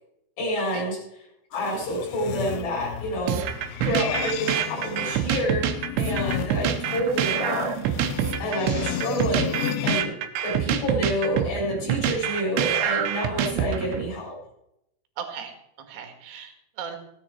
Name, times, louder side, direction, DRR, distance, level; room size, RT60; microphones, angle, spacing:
voice 1, 0.4-1.0 1.5-3.4 3.8-5.7 6.0-8.0 8.4-10.2 10.4-14.4, equal, 55° left, -3 dB, 5.7 m, -28 dB
sound 1, 1.5-10.0, left 10 dB, 80° left, 2.6 m, -33 dB
sound 2, 3.3-14.1, right 10 dB, 85° right, 3.3 m, -26 dB
voice 2, 15.2-17.0, right 7 dB, 70° right, 5 dB, 3.7 m, -37 dB
16.0 x 10.0 x 4.6 m, 0.81 s
omnidirectional pair, 5.0 m